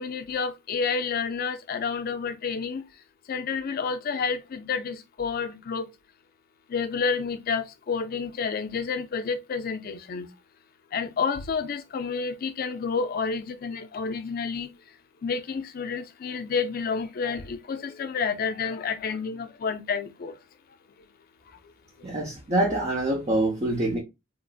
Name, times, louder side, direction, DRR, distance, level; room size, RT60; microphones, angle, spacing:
voice 1, 0.0-2.8 3.3-5.9 6.7-10.3 10.9-14.7 15.2-20.3, left 5 dB, 50° left, 0.4 m, -29 dB
voice 2, 22.0-24.0, right 1 dB, 35° right, 0.6 m, -25 dB
2.9 x 2.5 x 2.3 m
head